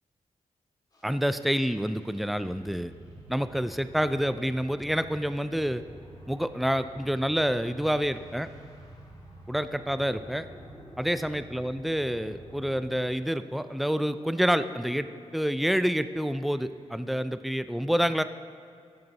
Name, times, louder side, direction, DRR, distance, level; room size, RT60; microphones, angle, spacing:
sound 1, 0.9-17.4, left 1 dB, 35° left, 1.6 m, -56 dB
voice 1, 1.0-2.9 3.3-5.8 6.3-8.5 9.5-10.5 11.0-15.1 15.3-18.2, equal, ahead, 12 dB, 0.3 m, -28 dB
Motorcycle / Idling, 2.7-13.1, right 1 dB, 70° right, 1.4 m, -49 dB
14.0 x 5.3 x 4.1 m, 2.3 s
cardioid pair, 80°, 12 cm